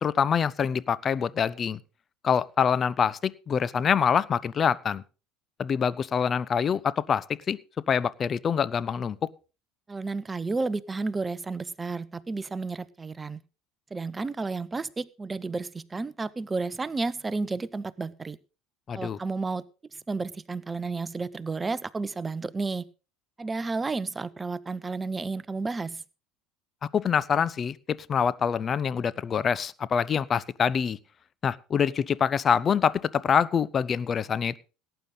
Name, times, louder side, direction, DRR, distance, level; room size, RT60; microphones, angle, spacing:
voice 1, 0.0-1.8 2.2-5.0 5.6-7.6 7.9-9.2 18.9-19.2 26.9-31.0 31.4-34.6, left 7 dB, 35° left, 20 dB, 0.7 m, -25 dB
voice 2, 9.9-13.4 13.9-18.4 18.9-19.6 19.9-22.9 23.4-26.0, right 3 dB, 20° right, 19 dB, 0.7 m, -32 dB
17.5 x 9.1 x 4.0 m, 0.34 s
figure-of-eight pair, 65°, 0 cm